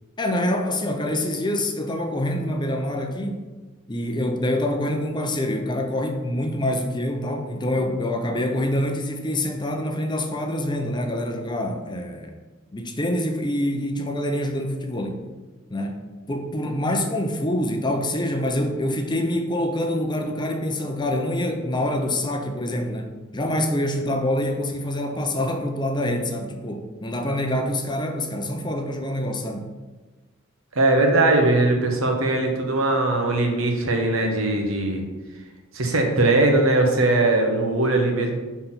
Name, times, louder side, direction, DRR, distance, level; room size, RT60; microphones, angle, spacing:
voice 1, 0.2-3.5 3.9-12.3 12.7-15.3 15.7-23.1 23.3-29.7, left 1 dB, 20° left, 4 dB, 0.7 m, -26 dB
voice 2, 30.7-35.0 35.7-38.4, right 2 dB, 70° right, 2 dB, 1.2 m, -20 dB
5.7 x 4.2 x 5.8 m, 1.3 s
head